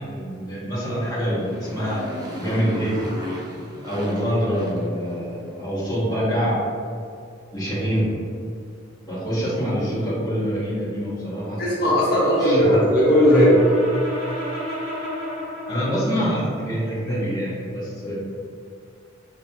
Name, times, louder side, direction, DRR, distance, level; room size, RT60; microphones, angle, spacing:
voice 1, 0.0-2.0 2.4-3.0 3.8-6.6 7.5-8.1 9.0-11.6 12.4-12.9 15.7-18.1, equal, 20° left, -10 dB, 1.3 m, -25 dB
Motorcycle, 1.0-5.5, equal, 20° right, 0.7 m, -36 dB
voice 2, 11.6-13.6, equal, 50° left, -8 dB, 1.4 m, -17 dB
Brass instrument, 12.1-16.3, equal, 75° right, 1.4 m, -32 dB
5.3 x 3.2 x 3.0 m, 2.5 s
head